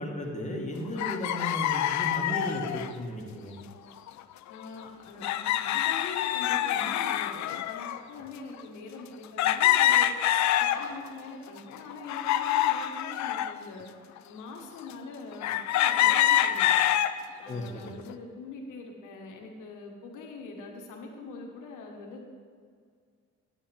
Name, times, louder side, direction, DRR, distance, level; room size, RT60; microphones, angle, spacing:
voice 1, 0.0-3.6 17.5-17.9, equal, 25° left, 0 dB, 1.7 m, -35 dB
chickens in coop, 1.0-2.9 4.1-4.2 4.5-4.6 5.2-8.0 8.6-8.7 9.4-11.1 11.6-13.5 14.2-14.3 15.4-17.1 17.7-18.1, left 12 dB, 65° left, 0.5 m, -26 dB
voice 2, 4.5-10.1 10.6-13.9 14.3-16.7 17.4-22.3, left 3 dB, 85° left, 1 dB, 1.5 m, -43 dB
10.0 x 7.2 x 4.5 m, 2.1 s
cardioid pair, 90°, 30 cm